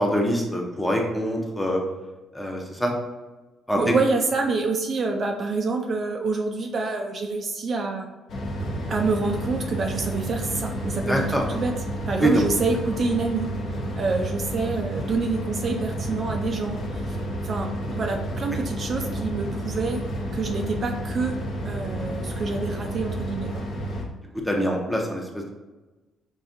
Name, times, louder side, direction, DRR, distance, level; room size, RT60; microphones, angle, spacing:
voice 1, 0.0-1.8 2.3-2.9 3.7-3.9 11.1-11.4 12.2-12.4 24.4-25.5, equal, 5° left, 0 dB, 0.7 m, -24 dB
voice 2, 3.8-8.1 8.9-11.7 12.1-13.5 14.0-20.0 20.3-21.4 21.6-23.5, right 3 dB, 40° right, 3 dB, 0.4 m, -27 dB
sound 1, 8.3-24.0, equal, 50° left, 0.8 m, -31 dB
5.5 x 2.6 x 2.5 m, 1.2 s
cardioid pair, 125°, 0 cm